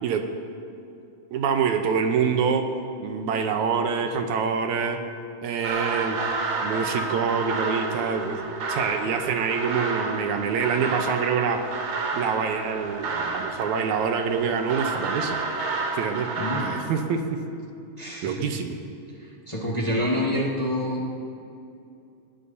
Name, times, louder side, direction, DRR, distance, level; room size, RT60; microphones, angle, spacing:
voice 1, 1.3-2.7 3.0-5.0 5.4-6.2 6.6-11.7 12.1-15.4 15.9-16.3 16.6-17.4 18.2-18.8, right 6 dB, 70° right, 5 dB, 2.1 m, -26 dB
sound 1, 5.6-16.8, right 3 dB, 90° right, 3.2 m, -30 dB
voice 2, 18.0-18.5 19.2-21.1, left 1 dB, 45° left, -4 dB, 0.4 m, -27 dB
20.0 x 19.0 x 2.8 m, 2.6 s
omnidirectional pair, 3.7 m